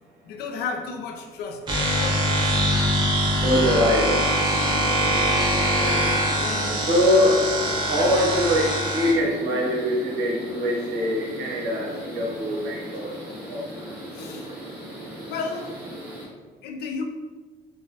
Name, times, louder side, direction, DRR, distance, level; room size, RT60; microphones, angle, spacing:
voice 1, 0.3-2.4 5.7-6.8 8.0-8.2 14.1-14.5 15.3-15.7 16.6-17.0, left 4 dB, 70° left, 4 dB, 0.4 m, -33 dB
sound 1, 1.7-9.1, equal, 25° right, 0.7 m, -23 dB
voice 2, 3.3-4.3 6.9-7.5 7.9-13.7, left 1 dB, 85° right, -2 dB, 0.8 m, -23 dB
sound 2, 4.2-16.3, equal, 10° right, 1.2 m, -38 dB
3.0 x 2.2 x 2.7 m, 1.3 s
cardioid pair, 110°, 17 cm